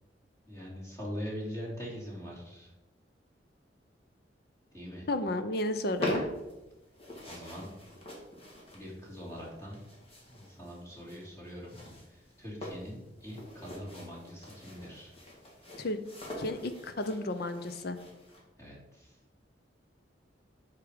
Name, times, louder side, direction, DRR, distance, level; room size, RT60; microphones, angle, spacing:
voice 1, 0.5-2.7 4.7-5.1 7.3-7.7 8.7-9.8 10.3-11.8 12.1-15.1 18.6-19.2, equal, 20° left, -5 dB, 2.9 m, -42 dB
voice 2, 5.1-6.2 15.8-16.0 16.4-18.0, left 1 dB, 60° left, 9 dB, 0.7 m, -32 dB
sound 1, 5.7-18.4, left 1 dB, 35° left, 2.1 m, -44 dB
7.9 x 5.0 x 5.0 m, 1.0 s
head